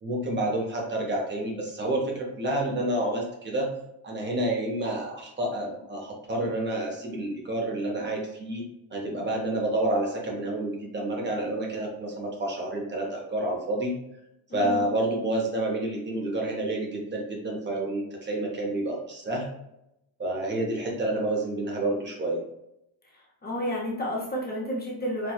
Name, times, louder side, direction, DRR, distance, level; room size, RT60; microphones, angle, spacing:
voice 1, 0.0-3.7 4.0-8.6 8.9-13.9 14.5-19.5 20.2-22.4, right 1 dB, 25° right, 0 dB, 0.6 m, -29 dB
voice 2, 14.5-14.9 23.4-25.3, equal, 20° left, -4 dB, 0.6 m, -31 dB
4.4 x 2.2 x 2.3 m, 0.85 s
cardioid pair, 160°, 47 cm